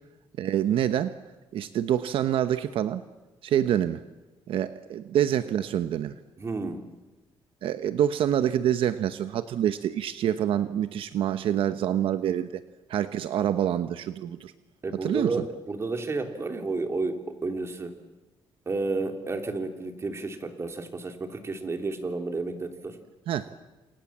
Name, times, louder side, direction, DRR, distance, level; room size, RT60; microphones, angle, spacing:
voice 1, 0.4-1.1 1.5-3.0 3.4-4.0 4.5-6.2 7.6-12.6 12.9-14.5 15.0-15.4 23.3-23.5, right 10 dB, 75° right, 11 dB, 1.0 m, -26 dB
voice 2, 6.4-6.9 14.8-18.0 18.7-23.0, right 3 dB, 30° right, 5 dB, 3.1 m, -31 dB
29.5 x 27.0 x 7.4 m, 1.2 s
cardioid pair, 125°, 9 cm